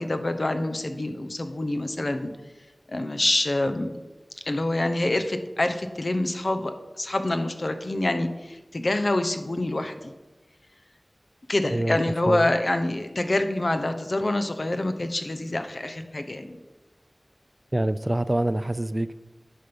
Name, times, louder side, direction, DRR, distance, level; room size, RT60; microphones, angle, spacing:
voice 1, 0.0-2.3 2.9-3.9 4.5-10.1 11.5-16.6, left 1 dB, 60° left, 8 dB, 0.8 m, -26 dB
voice 2, 17.7-19.1, right 1 dB, 35° right, 14 dB, 0.4 m, -25 dB
10.0 x 5.4 x 5.2 m, 1.1 s
wide cardioid pair, 55°, 0 cm